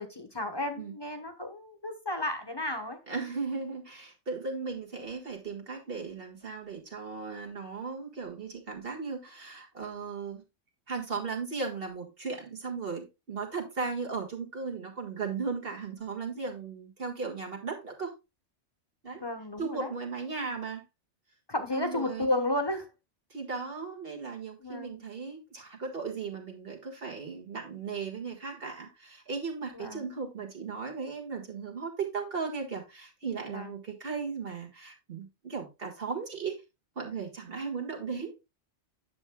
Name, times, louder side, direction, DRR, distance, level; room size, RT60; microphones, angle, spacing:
voice 1, 0.0-3.0 19.2-19.9 21.5-22.9 24.6-25.0 29.7-30.1 33.5-33.7, left 1 dB, 20° left, 1.1 m, -33 dB
voice 2, 3.1-10.4 10.9-18.2 19.0-19.2 19.6-20.8 21.7-22.3 23.3-36.6 37.0-38.4, right 5 dB, 50° right, 1.9 m, -36 dB
9.9 x 7.1 x 2.2 m
omnidirectional pair, 1.2 m